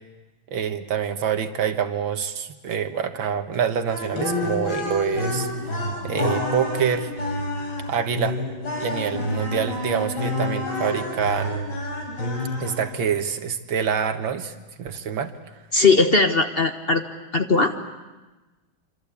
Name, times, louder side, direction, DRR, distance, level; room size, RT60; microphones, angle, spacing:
voice 1, 0.5-5.5 6.0-7.1 7.9-8.4 8.8-11.7 12.6-15.6, right 7 dB, 75° right, 8 dB, 2.2 m, -26 dB
sound 1, 3.9-13.1, left 1 dB, 60° left, 5.4 m, -28 dB
voice 2, 15.7-17.0 17.3-17.9, left 3 dB, 35° left, 6 dB, 1.2 m, -19 dB
26.5 x 26.0 x 8.5 m, 1.2 s
omnidirectional pair, 2.2 m